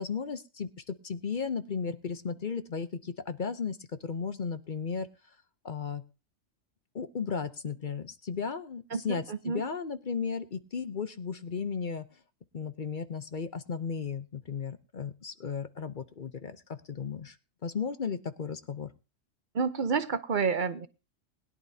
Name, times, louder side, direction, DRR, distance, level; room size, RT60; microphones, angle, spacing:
voice 1, 0.0-3.8 4.0-5.1 5.6-6.0 6.9-12.1 12.5-17.4 17.6-18.9, left 6 dB, 45° left, 0.8 m, -35 dB
voice 2, 8.9-9.6 19.5-20.9, right 5 dB, 45° right, 0.9 m, -29 dB
20.5 x 11.0 x 2.8 m
omnidirectional pair, 1.3 m